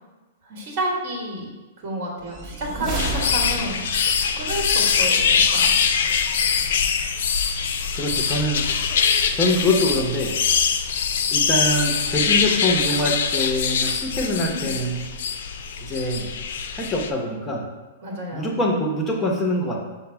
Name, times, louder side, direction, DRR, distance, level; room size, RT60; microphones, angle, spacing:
voice 1, 0.4-1.5 1.8-3.8 4.4-5.8 14.2-14.7 18.0-18.5, right 1 dB, 45° right, -2 dB, 1.2 m, -30 dB
sound 1, 2.2-4.0, right 1 dB, 20° right, 1.0 m, -30 dB
sound 2, 3.0-17.1, left 6 dB, 70° left, 0.3 m, -23 dB
voice 2, 7.9-8.7 9.3-10.4 11.3-15.0 15.8-16.3 16.7-17.7 18.3-19.8, left 1 dB, 10° left, -1 dB, 0.7 m, -24 dB
5.7 x 2.0 x 4.4 m, 1.2 s
hypercardioid pair, 155°, 0 cm